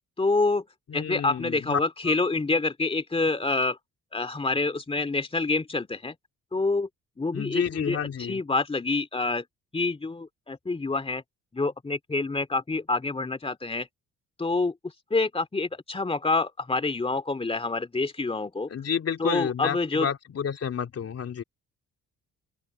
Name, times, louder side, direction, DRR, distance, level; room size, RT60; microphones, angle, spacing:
voice 1, 0.2-0.6 0.9-3.8 4.1-6.1 6.5-6.9 7.2-9.4 9.7-11.2 11.5-13.9 14.4-18.7 19.2-20.1, left 3 dB, 20° left, 2.6 m, -27 dB
voice 2, 0.9-1.8 2.1-2.2 7.3-8.4 18.7-21.4, left 7 dB, 50° left, 3.0 m, -30 dB
open air
cardioid pair, 90°, 30 cm